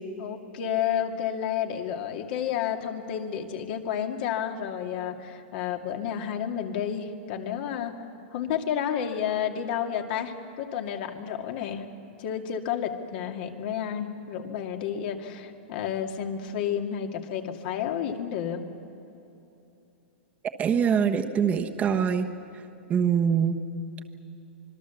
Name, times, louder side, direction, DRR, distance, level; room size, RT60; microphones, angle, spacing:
voice 1, 0.2-7.9 8.3-11.9 12.2-18.6, left 9 dB, 55° left, 4 dB, 2.3 m, -31 dB
voice 2, 20.6-22.3 22.9-23.6, right 7 dB, 20° right, 4 dB, 1.2 m, -23 dB
26.0 x 21.5 x 7.2 m, 2.9 s
hypercardioid pair, 135°, 6 cm